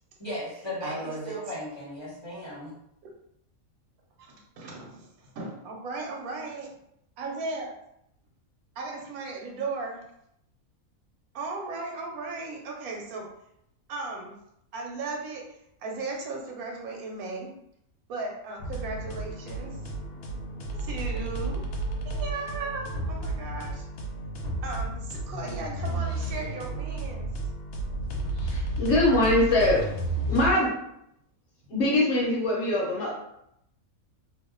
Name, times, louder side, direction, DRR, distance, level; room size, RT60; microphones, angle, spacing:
voice 1, 0.2-2.8, left 1 dB, 20° left, -7 dB, 0.9 m, -36 dB
voice 2, 0.8-1.4 4.2-6.8 7.2-7.7 8.8-10.0 11.3-13.3 13.9-14.4 14.7-17.5 18.1-19.8 20.8-21.6 22.0-23.9 24.6-27.3, right 3 dB, 85° right, 0 dB, 1.2 m, -36 dB
sound 1, 18.6-30.5, right 1 dB, 85° left, 1.1 m, -32 dB
voice 3, 28.4-29.8 30.3-30.7 31.7-33.1, left 1 dB, 55° left, -3 dB, 1.0 m, -23 dB
2.7 x 2.2 x 3.7 m, 0.77 s
omnidirectional pair, 1.5 m